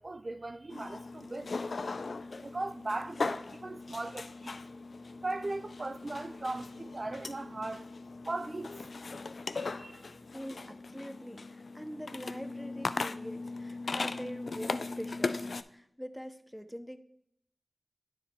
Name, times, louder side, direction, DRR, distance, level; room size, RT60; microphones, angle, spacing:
voice 1, 0.0-1.6 2.4-4.6 5.2-7.9 8.3-8.7 9.6-10.1, right 2 dB, 50° right, 0.3 m, -38 dB
sound 1, 0.7-15.6, left 3 dB, 75° left, 0.3 m, -39 dB
voice 2, 10.3-17.0, equal, ahead, 0.6 m, -44 dB
9.6 x 4.7 x 3.6 m
cardioid pair, 50°, 0 cm